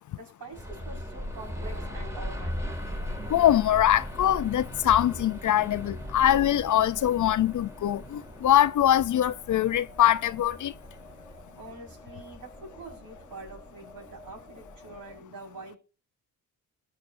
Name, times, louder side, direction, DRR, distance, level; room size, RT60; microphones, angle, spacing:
voice 1, 0.1-2.7 11.6-15.8, right 3 dB, 65° right, 5.3 m, -45 dB
sound 1, 0.5-15.2, left 1 dB, 10° right, 2.2 m, -39 dB
voice 2, 3.3-10.7, left 12 dB, 50° left, 0.6 m, -23 dB
19.0 x 7.1 x 2.6 m
cardioid pair, 80°, 38 cm